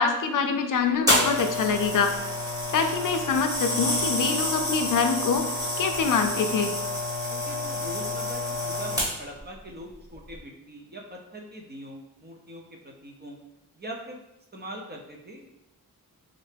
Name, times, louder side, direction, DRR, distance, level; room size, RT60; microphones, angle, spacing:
voice 1, 0.0-2.1 2.7-6.7, left 5 dB, 65° left, 5 dB, 0.4 m, -25 dB
Electric razor, 1.1-9.4 10.1-10.3, left 1 dB, 10° right, 1.0 m, -28 dB
voice 2, 7.3-13.4 13.7-14.2 14.5-15.6, right 1 dB, 30° right, 1 dB, 0.5 m, -42 dB
3.8 x 3.2 x 3.3 m, 0.91 s
wide cardioid pair, 180°, 35 cm